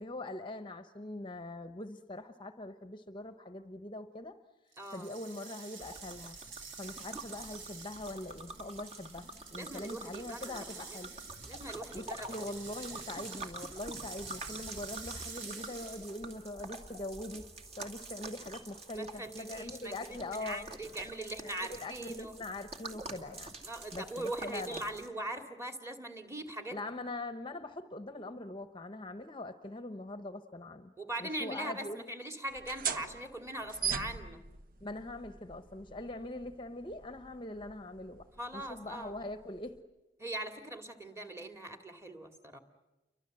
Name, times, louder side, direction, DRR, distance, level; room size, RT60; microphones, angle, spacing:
voice 1, 0.0-4.4 4.9-6.4 6.8-11.1 11.9-17.5 17.8-20.6 21.4-23.5 23.9-24.9 26.7-30.9 31.2-32.0 34.8-38.3 38.5-39.8, left 2 dB, 25° left, 9 dB, 1.0 m, -42 dB
sound 1, 4.7-16.3, right 5 dB, 80° right, 4.3 m, -49 dB
voice 2, 4.8-5.1 9.5-11.0 11.4-12.4 12.9-13.2 18.9-22.3 23.7-26.8 31.0-34.4 38.3-39.2 40.2-42.6, right 1 dB, 15° right, 6 dB, 2.4 m, -41 dB
sound 2, 5.8-25.1, right 2 dB, 35° right, 2.5 m, -47 dB
sound 3, 32.5-39.8, right 7 dB, 50° right, 1.1 m, -42 dB
29.5 x 24.5 x 7.7 m, 1.1 s
head